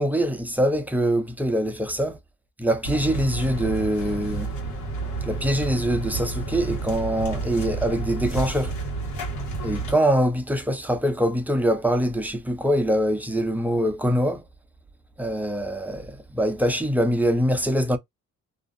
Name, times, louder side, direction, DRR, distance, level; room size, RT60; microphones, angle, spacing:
voice 1, 0.0-2.2 2.6-4.5 5.2-8.8 9.6-14.4 15.2-18.0, equal, 5° right, 0.6 m, -24 dB
sound 1, 2.8-9.9, right 3 dB, 85° left, 1.3 m, -30 dB
2.6 x 2.0 x 2.5 m
cardioid pair, 90°, 30 cm